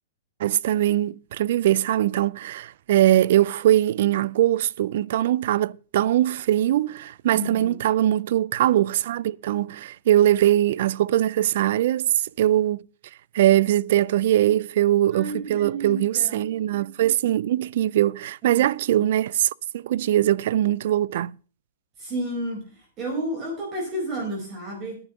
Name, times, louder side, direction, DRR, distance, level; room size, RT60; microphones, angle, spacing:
voice 1, 0.4-12.8 13.3-21.3, right 13 dB, 60° right, 0.4 m, -21 dB
voice 2, 7.3-7.8 15.1-16.4 18.4-18.6 22.0-25.0, right 1 dB, 30° right, 5.0 m, -31 dB
10.0 x 6.9 x 7.7 m
hypercardioid pair, 145°, 0 cm